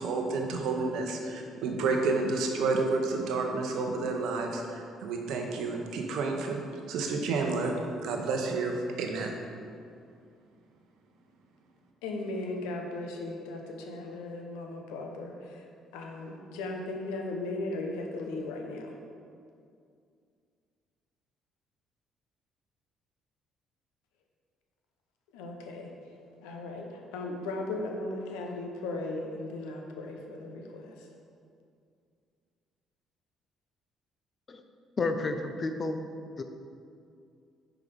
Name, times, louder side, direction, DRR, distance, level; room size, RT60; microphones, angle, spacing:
voice 1, 0.0-6.6 6.9-7.7 8.0-9.4, right 3 dB, 70° right, 2 dB, 0.8 m, -30 dB
voice 2, 12.0-15.3 15.9-18.9 25.3-25.9 26.4-26.9 27.1-30.9, left 2 dB, 85° left, 2 dB, 0.8 m, -37 dB
voice 3, 35.0-36.0 36.4-36.5, left 3 dB, 40° left, 7 dB, 0.6 m, -30 dB
5.0 x 4.7 x 5.4 m, 2.3 s
hypercardioid pair, 60°, 0 cm